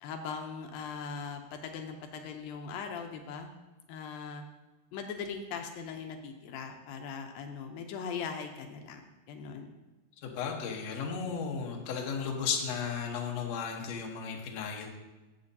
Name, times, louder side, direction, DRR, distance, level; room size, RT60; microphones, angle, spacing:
voice 1, 0.0-3.5 3.9-4.4 4.9-9.7, left 6 dB, 80° left, 5 dB, 2.5 m, -40 dB
voice 2, 10.2-14.9, left 6 dB, 60° left, 0 dB, 2.0 m, -34 dB
14.0 x 7.9 x 2.8 m, 1.1 s
omnidirectional pair, 4.1 m